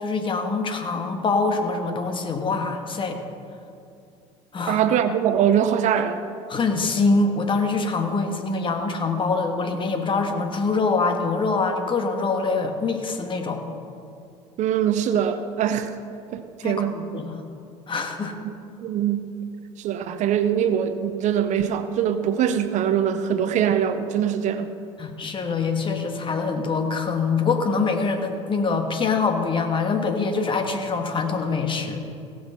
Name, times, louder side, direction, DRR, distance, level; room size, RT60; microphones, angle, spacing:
voice 1, 0.0-3.2 4.5-4.8 6.5-13.6 16.6-17.4 17.9-18.3 25.0-32.0, left 4 dB, 35° left, 5 dB, 1.6 m, -24 dB
voice 2, 4.7-6.2 14.6-16.0 16.3-17.0 18.4-18.5 18.8-19.3 19.8-24.7, right 9 dB, 55° right, 10 dB, 0.7 m, -23 dB
17.0 x 6.2 x 5.8 m, 2.5 s
hypercardioid pair, 75°, 15 cm